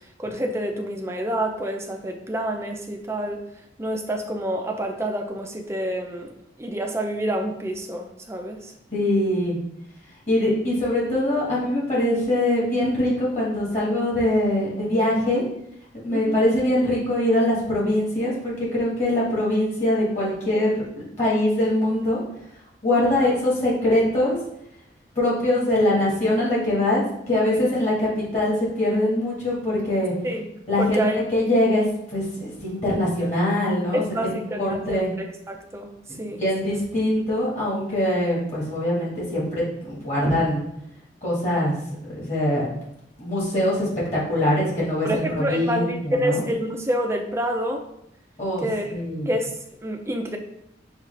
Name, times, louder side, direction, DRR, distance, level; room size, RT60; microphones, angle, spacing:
voice 1, 0.2-3.4 3.8-6.3 6.6-8.7 16.1-16.4 23.1-23.3 30.2-30.5 30.8-31.2 33.9-35.9 36.2-36.4 36.6-36.8 45.0-47.8 48.6-48.9 49.3-49.5 49.8-50.4, equal, 15° right, 3 dB, 0.4 m, -27 dB
voice 2, 8.9-9.6 10.3-15.4 16.0-22.2 22.8-24.4 25.1-30.1 30.7-35.1 36.1-40.6 41.2-41.8 42.1-42.7 43.2-46.4 48.4-49.3, left 1 dB, 35° left, -6 dB, 1.6 m, -23 dB
6.1 x 2.4 x 3.2 m, 0.78 s
head